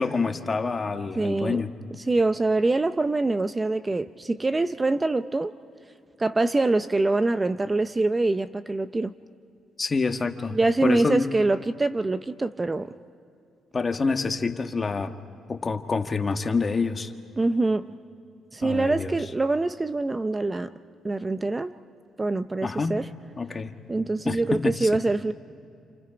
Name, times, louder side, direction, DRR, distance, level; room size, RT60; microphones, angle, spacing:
voice 1, 0.0-1.7 9.8-11.3 13.7-15.1 15.5-17.1 18.6-19.2 22.6-23.0 23.4-23.8 24.2-24.9, left 4 dB, 30° left, 6 dB, 1.5 m, -27 dB
voice 2, 1.2-1.6 2.1-5.5 6.2-9.1 10.5-12.9 17.4-17.9 18.5-20.7 21.0-21.7 22.2-23.1 23.9-25.3, right 2 dB, 20° right, 12 dB, 0.6 m, -24 dB
29.5 x 28.5 x 5.1 m, 2.5 s
cardioid pair, 90°, 0 cm